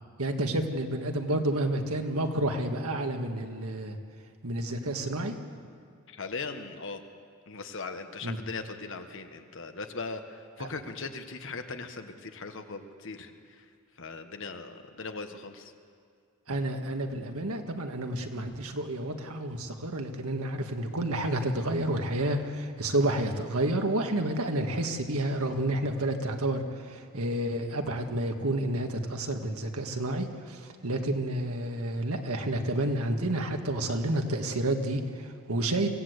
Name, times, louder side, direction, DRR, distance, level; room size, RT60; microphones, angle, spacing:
voice 1, 0.2-4.0 4.4-5.3 8.2-8.4 10.6-10.7 16.5-35.9, right 1 dB, 75° right, 4 dB, 1.9 m, -30 dB
voice 2, 6.1-7.0 7.5-13.6 14.0-15.7 30.9-31.0, left 4 dB, 60° left, 7 dB, 1.5 m, -39 dB
24.5 x 16.5 x 8.2 m, 2.2 s
head